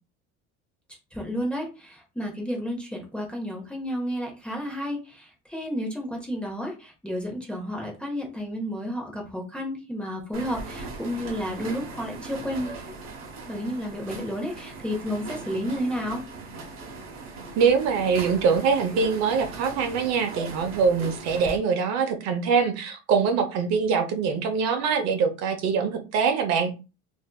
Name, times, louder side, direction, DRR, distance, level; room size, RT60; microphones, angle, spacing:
voice 1, 1.1-12.8 13.5-16.2, equal, 5° left, -1 dB, 0.6 m, -31 dB
sound 1, 10.3-21.6, right 3 dB, 40° right, 1.0 m, -39 dB
voice 2, 17.6-26.7, right 5 dB, 55° right, 6 dB, 0.7 m, -23 dB
3.3 x 2.6 x 2.3 m, 0.30 s
cardioid pair, 150°, 32 cm